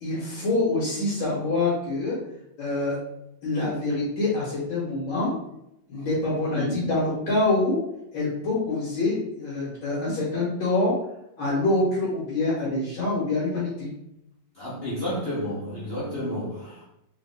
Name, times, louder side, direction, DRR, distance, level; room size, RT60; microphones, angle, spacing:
voice 1, 0.0-2.2 2.6-3.0 3.4-5.3 5.9-7.8 8.1-10.9 11.4-13.9, left 2 dB, 65° left, -5 dB, 1.9 m, -25 dB
voice 2, 14.6-16.8, equal, 90° left, -7 dB, 0.5 m, -31 dB
3.6 x 3.4 x 3.3 m, 0.81 s
omnidirectional pair, 2.4 m